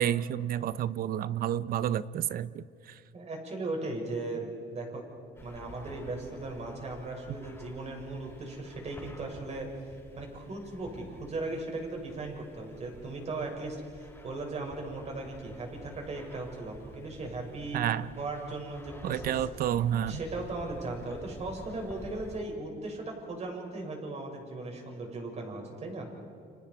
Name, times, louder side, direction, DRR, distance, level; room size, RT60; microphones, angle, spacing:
voice 1, 0.0-2.6 17.7-18.1 19.0-20.2, right 10 dB, 60° right, 17 dB, 0.7 m, -29 dB
voice 2, 3.1-5.0 5.4-9.7 10.2-17.8 18.1-19.5 20.1-26.1, right 2 dB, 40° right, 1 dB, 6.6 m, -37 dB
sound 1, 5.4-22.4, left 1 dB, 15° left, 6.1 m, -50 dB
29.5 x 28.0 x 4.8 m, 2.6 s
cardioid pair, 110°, 17 cm